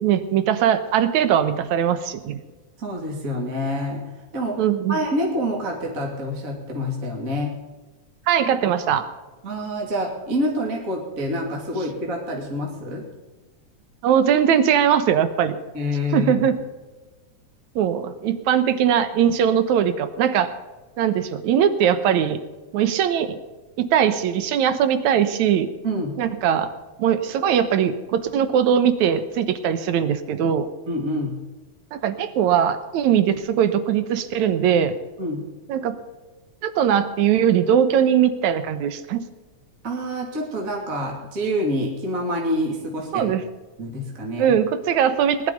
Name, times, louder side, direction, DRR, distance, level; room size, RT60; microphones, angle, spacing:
voice 1, 0.0-2.4 4.6-5.0 8.3-9.0 14.0-15.6 16.1-16.6 17.8-20.5 21.0-22.4 22.7-23.4 23.8-25.7 26.2-26.7 27.0-30.7 31.9-35.0 35.7-36.0 36.6-39.2 43.1-43.4 44.4-45.5, right 9 dB, 70° right, 11 dB, 2.4 m, -20 dB
voice 2, 2.8-4.6 4.9-7.6 9.4-13.1 15.7-16.3 25.8-26.2 30.9-31.4 35.2-35.5 39.8-43.4 43.8-44.5, equal, 25° right, -1 dB, 2.9 m, -27 dB
19.5 x 11.5 x 5.3 m, 1.2 s
omnidirectional pair, 3.5 m